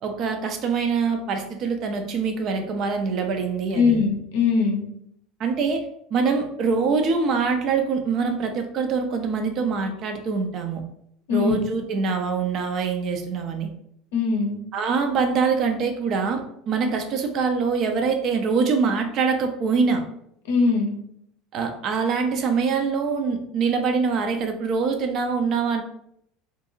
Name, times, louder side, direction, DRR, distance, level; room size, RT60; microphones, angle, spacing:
voice 1, 0.0-4.0 5.4-5.8 6.1-10.8 11.3-13.7 14.7-20.0 21.5-25.8, right 5 dB, 45° right, 5 dB, 0.4 m, -24 dB
voice 2, 3.7-4.9 11.3-11.5 14.1-14.6 20.5-21.0, left 5 dB, 65° left, 1 dB, 0.6 m, -21 dB
2.6 x 2.5 x 2.6 m, 0.71 s
figure-of-eight pair, 70°, 0 cm